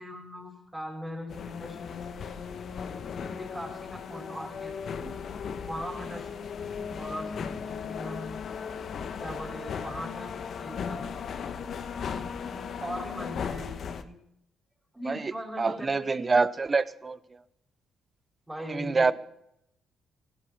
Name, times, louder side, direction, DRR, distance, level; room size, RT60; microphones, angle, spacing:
voice 1, 0.0-2.3 3.3-5.1 5.6-8.4 9.2-12.0 12.8-14.2 14.9-16.2 18.5-19.1, equal, 10° right, 0 dB, 5.2 m, -40 dB
sound 1, 1.3-14.0, left 6 dB, 60° left, 1.2 m, -36 dB
voice 2, 15.1-17.2 18.7-19.1, right 4 dB, 30° right, 16 dB, 0.8 m, -26 dB
16.5 x 11.0 x 6.0 m, 0.77 s
cardioid pair, 90°, 0 cm